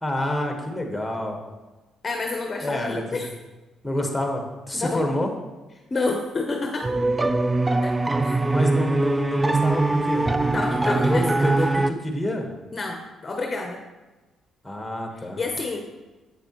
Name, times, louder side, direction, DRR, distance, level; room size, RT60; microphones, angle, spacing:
voice 1, 0.0-1.4 2.6-3.2 3.8-5.3 8.5-10.3 10.9-12.5 14.6-15.4, left 1 dB, 5° left, 3 dB, 1.3 m, -27 dB
voice 2, 2.0-3.3 4.7-5.0 5.9-6.9 7.8-8.4 10.5-11.6 12.7-13.8 15.2-15.8, left 3 dB, 35° left, 3 dB, 0.8 m, -29 dB
sound 1, 6.8-11.9, right 2 dB, 15° right, 0.3 m, -22 dB
7.5 x 6.8 x 3.0 m, 1.2 s
cardioid pair, 90°, 0 cm